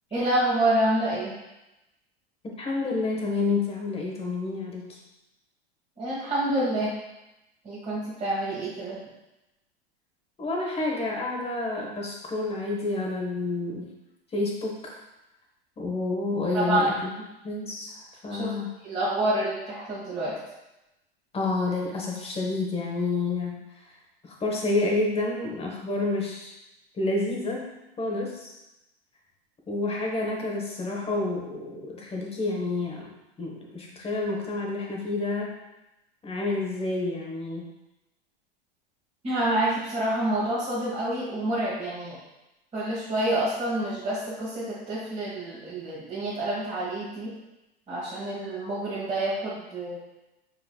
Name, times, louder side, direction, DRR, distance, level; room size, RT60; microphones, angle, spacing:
voice 1, 0.1-1.3 6.0-6.9 7.6-9.0 16.5-16.9 18.3-18.5 18.8-20.3 39.2-42.2 42.7-47.3 47.9-50.0, right 1 dB, 20° right, -10 dB, 1.7 m, -27 dB
voice 2, 2.4-5.0 10.4-13.9 14.3-14.9 15.8-17.1 17.4-18.7 21.3-23.9 24.2-26.5 26.9-28.5 29.7-33.1 33.4-35.5 36.2-37.7, left 2 dB, 20° left, -1 dB, 1.2 m, -29 dB
4.8 x 4.8 x 2.3 m, 0.96 s
hypercardioid pair, 100°, 31 cm